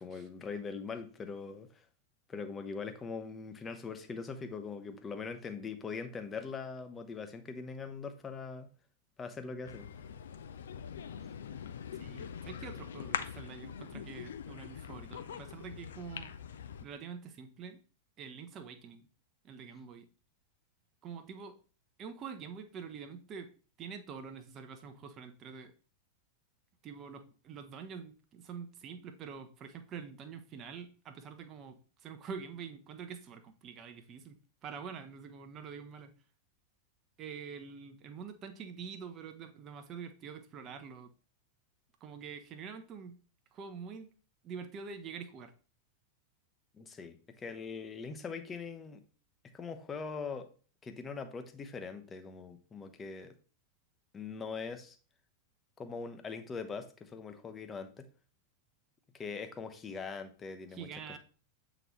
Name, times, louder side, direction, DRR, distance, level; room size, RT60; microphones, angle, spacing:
voice 1, 0.0-1.8 2.3-8.7 9.2-9.9 46.8-49.0 49.5-50.5 50.8-53.3 54.1-55.0 55.8-58.0 59.1-61.2, left 5 dB, 20° left, 8 dB, 0.8 m, -42 dB
sound 1, 9.7-16.8, left 8 dB, 65° left, 0.5 m, -43 dB
voice 2, 12.0-16.3 16.8-17.8 18.2-19.1 19.4-20.1 21.0-21.5 22.0-23.5 23.8-25.7 26.8-36.1 37.2-41.1 42.0-43.1 43.5-44.1 44.4-45.5 60.7-61.2, right 6 dB, 30° right, 6 dB, 0.8 m, -46 dB
7.8 x 3.9 x 3.1 m, 0.38 s
figure-of-eight pair, 90°, 0 cm